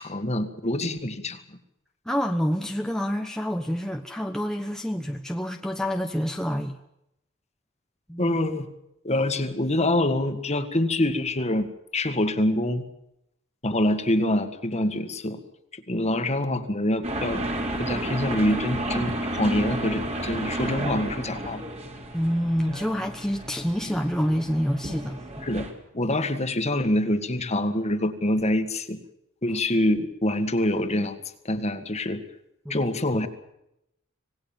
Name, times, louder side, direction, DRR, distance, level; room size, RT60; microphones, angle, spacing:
voice 1, 0.0-1.4 8.2-8.7 9.0-12.8 13.6-15.4 15.7-17.5 17.8-21.6 25.4-25.7 25.9-29.0 29.4-31.2 31.4-32.2 32.7-33.3, left 1 dB, 30° left, 9 dB, 2.0 m, -25 dB
voice 2, 2.1-6.8 8.1-8.4 22.1-25.5 32.6-32.8, equal, 5° left, 3 dB, 1.1 m, -27 dB
sound 1, 17.0-25.7, right 1 dB, 30° right, 3.4 m, -32 dB
26.5 x 18.5 x 7.5 m, 0.83 s
head